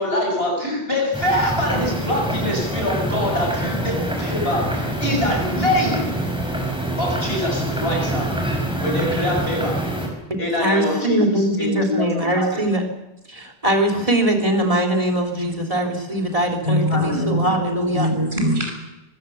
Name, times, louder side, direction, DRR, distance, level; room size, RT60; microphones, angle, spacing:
voice 1, 0.0-6.1 7.0-8.5 8.8-9.8 10.4-12.6 16.9-17.3, left 1 dB, 75° left, 1 dB, 7.0 m, -24 dB
sound 1, 1.1-10.1, right 1 dB, 5° right, 5.5 m, -25 dB
voice 2, 10.3-12.8 13.3-18.1, right 1 dB, 35° right, 5 dB, 3.5 m, -21 dB
voice 3, 16.6-17.6 17.9-18.7, equal, 55° right, 1 dB, 6.5 m, -22 dB
24.5 x 16.0 x 7.1 m, 0.97 s
omnidirectional pair, 1.0 m